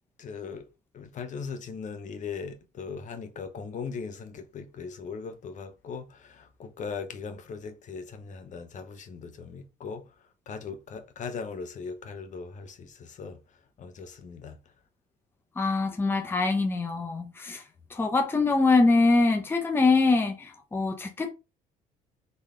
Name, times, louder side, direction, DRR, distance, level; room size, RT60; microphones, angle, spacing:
voice 1, 0.2-0.7 0.9-10.1 10.5-13.4 13.8-14.6, left 5 dB, 45° left, 1.0 m, -39 dB
voice 2, 15.6-17.6 17.9-21.3, left 3 dB, 15° left, 0.7 m, -24 dB
4.1 x 3.4 x 3.7 m
cardioid pair, 110°, 17 cm